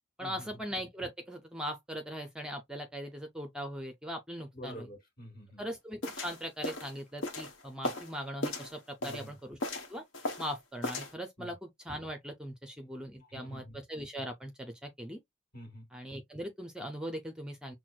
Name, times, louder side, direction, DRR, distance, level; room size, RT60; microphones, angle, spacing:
voice 1, 0.2-4.9 5.6-9.6 9.9-10.0 10.4-15.2 15.9-17.8, equal, 5° right, 0.5 m, -40 dB
voice 2, 4.5-5.6 9.0-9.3 11.4-11.5 13.2-13.8 15.5-15.9, equal, 45° left, 1.7 m, -47 dB
sound 1, 6.0-8.1 8.4-9.3 9.6-10.5 10.8-11.1, left 1 dB, 75° left, 1.0 m, -36 dB
6.0 x 2.1 x 2.3 m
head